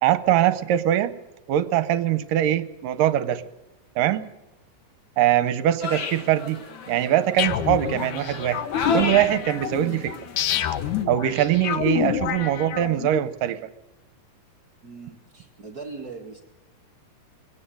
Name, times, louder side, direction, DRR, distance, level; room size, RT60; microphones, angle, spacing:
voice 1, 0.0-1.1 1.5-3.4 4.0-4.3 5.2-6.6 6.9-10.2 11.1-13.7, right 12 dB, 75° right, 13 dB, 2.4 m, -22 dB
sound 1, 5.8-11.0, left 3 dB, 50° left, 1.6 m, -34 dB
sound 2, 7.4-13.2, left 10 dB, 70° left, 2.1 m, -28 dB
voice 2, 14.8-16.4, right 4 dB, 40° right, 2 dB, 1.5 m, -40 dB
23.0 x 17.5 x 7.8 m, 0.93 s
omnidirectional pair, 4.1 m